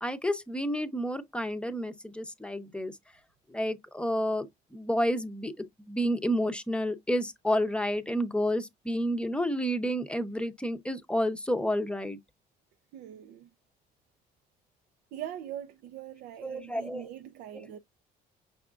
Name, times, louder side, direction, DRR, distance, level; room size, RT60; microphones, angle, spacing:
voice 1, 0.0-2.9 3.5-4.5 4.7-5.5 5.9-12.2 16.4-17.1, equal, 5° left, 0.7 m, -30 dB
voice 2, 12.9-13.5 15.1-17.8, right 11 dB, 80° right, 0.5 m, -42 dB
6.0 x 3.5 x 2.4 m
cardioid pair, 110°, 17 cm